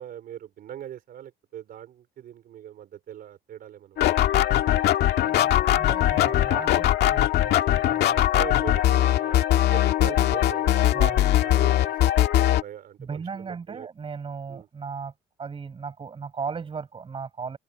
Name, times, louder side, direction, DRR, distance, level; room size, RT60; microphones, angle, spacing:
voice 1, 0.0-4.5 8.0-9.5 9.7-10.8 11.4-13.9 14.5-14.7, right 11 dB, 60° right, 4.6 m, -41 dB
sound 1, 4.0-12.6, left 13 dB, 75° left, 2.1 m, -21 dB
voice 2, 5.2-8.1 10.9-11.3 13.0-15.1 15.4-17.6, right 5 dB, 30° right, 7.1 m, -36 dB
open air
cardioid pair, 110°, 17 cm